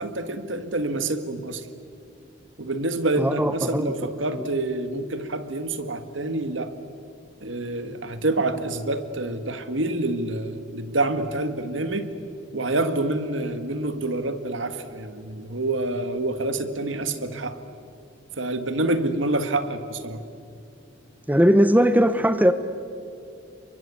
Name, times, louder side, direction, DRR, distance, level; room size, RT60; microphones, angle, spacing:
voice 1, 0.0-1.7 2.6-6.7 7.4-12.1 12.5-17.6 18.4-20.2, right 2 dB, 75° right, 10 dB, 1.9 m, -27 dB
voice 2, 3.2-3.9 4.3-4.5 21.3-22.5, equal, 10° right, 11 dB, 0.8 m, -19 dB
29.5 x 23.5 x 8.4 m, 2.6 s
head